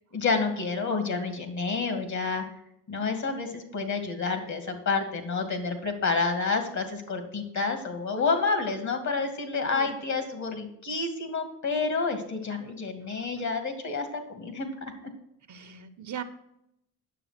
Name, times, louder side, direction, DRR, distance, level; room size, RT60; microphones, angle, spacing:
voice 1, 0.1-2.4 2.9-14.9, left 4 dB, 45° left, 7 dB, 2.4 m, -29 dB
voice 2, 15.5-16.2, right 8 dB, 50° right, 9 dB, 1.0 m, -38 dB
9.3 x 7.0 x 6.0 m, 0.79 s
cardioid pair, 85°, 38 cm